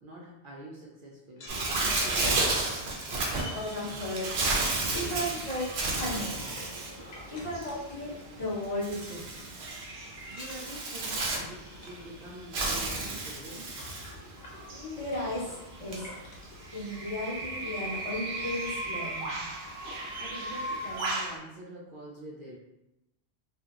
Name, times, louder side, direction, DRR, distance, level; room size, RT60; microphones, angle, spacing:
voice 1, 0.0-2.6 10.3-13.8 20.2-22.5, right 1 dB, 60° right, -5 dB, 0.6 m, -45 dB
sound 1, 1.3-8.4 8.7-9.0 9.3-9.8 10.3-16.7 17.3-17.4 17.8-17.9 18.2-18.7, left 1 dB, 75° left, 1.0 m, -51 dB
Bird, 1.5-21.4, right 2 dB, 90° right, 0.9 m, -33 dB
voice 2, 3.3-4.3 4.9-5.7 6.0-6.7 7.3-9.4 14.7-16.1 16.7-19.4, left 1 dB, 35° left, -7 dB, 0.8 m, -35 dB
2.7 x 2.6 x 2.3 m, 0.91 s
omnidirectional pair, 1.0 m